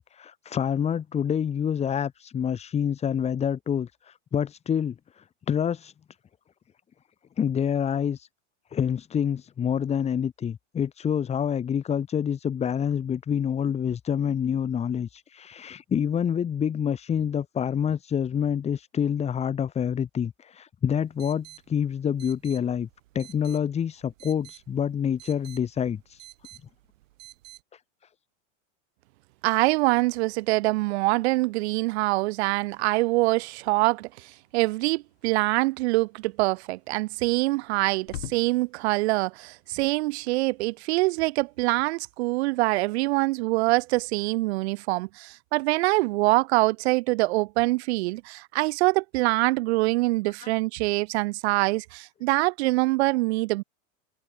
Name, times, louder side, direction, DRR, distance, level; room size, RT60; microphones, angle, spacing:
voice 1, 0.0-5.9 7.4-8.3 8.7-22.9 23.1-26.2 27.7-27.8 50.4-50.5, left 8 dB, 15° left, 2.1 m, -27 dB
sound 1, 20.9-27.6, right 16 dB, 65° right, 4.8 m, -51 dB
voice 2, 29.4-53.6, right 22 dB, 50° right, 1.0 m, -24 dB
sound 2, 34.0-42.9, left 16 dB, 70° left, 6.6 m, -49 dB
supercardioid pair, 160°, 40 cm